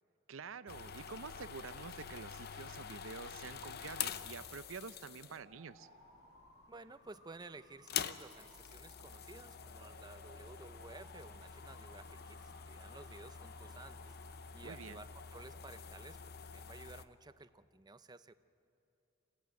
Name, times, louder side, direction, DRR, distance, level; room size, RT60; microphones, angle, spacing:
voice 1, 0.3-5.9 14.6-15.0, right 5 dB, 70° right, 14 dB, 0.6 m, -48 dB
sound 1, 0.7-5.6 6.3-6.8 7.1-7.2 7.7-17.0, left 8 dB, 50° left, 0.7 m, -46 dB
sound 2, 3.9-15.9, equal, 65° left, 6.1 m, -63 dB
voice 2, 6.7-18.3, right 3 dB, 20° right, 13 dB, 0.5 m, -54 dB
27.0 x 15.5 x 9.3 m, 2.7 s
head